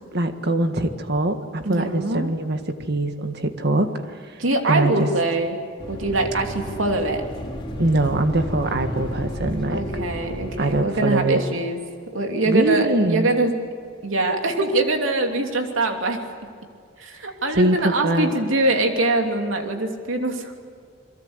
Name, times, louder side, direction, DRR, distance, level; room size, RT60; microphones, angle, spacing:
voice 1, 0.1-3.9 4.7-5.1 7.8-9.8 10.6-11.4 12.5-13.3 17.5-18.3, right 2 dB, 55° right, 7 dB, 1.8 m, -22 dB
voice 2, 1.6-2.3 4.4-5.6 5.9-7.2 9.7-11.8 12.1-13.5 14.0-16.2 17.0-20.6, right 2 dB, 90° right, 4 dB, 3.0 m, -23 dB
sound 1, 5.8-10.8, equal, 25° left, 4.0 m, -32 dB
28.0 x 22.5 x 8.2 m, 2.1 s
head